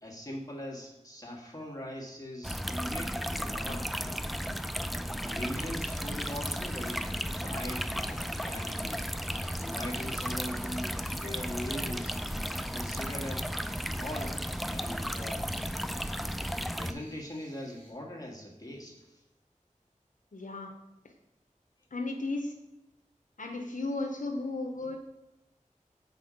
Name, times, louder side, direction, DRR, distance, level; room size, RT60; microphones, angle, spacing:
voice 1, 0.0-4.1 5.2-9.1 9.6-12.2 12.7-13.5 13.9-15.5 16.8-19.2, left 1 dB, 25° left, -1 dB, 1.5 m, -41 dB
sound 1, 2.4-16.9, equal, ahead, 0.3 m, -34 dB
sound 2, 5.8-17.9, right 1 dB, 70° right, 2.5 m, -57 dB
voice 2, 20.3-20.7 21.9-22.5 23.4-25.0, left 2 dB, 80° left, 3 dB, 0.7 m, -34 dB
6.2 x 4.3 x 5.0 m, 0.94 s
wide cardioid pair, 50°, 13 cm